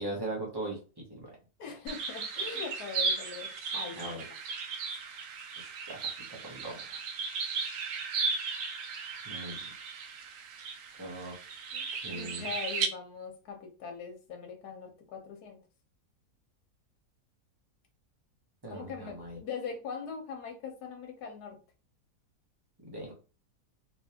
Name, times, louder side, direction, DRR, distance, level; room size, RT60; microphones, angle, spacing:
voice 1, 0.0-1.4 4.0-4.2 5.9-7.0 9.2-9.7 11.0-11.4 11.9-12.5 18.6-19.4 22.8-23.1, right 2 dB, 20° right, -3 dB, 0.8 m, -40 dB
voice 2, 1.6-4.2 11.7-15.6 18.7-21.6, left 5 dB, 75° left, 3 dB, 1.4 m, -41 dB
sound 1, 1.9-12.9, right 5 dB, 65° right, 0.9 m, -36 dB
3.3 x 3.0 x 2.8 m, 0.35 s
omnidirectional pair, 1.7 m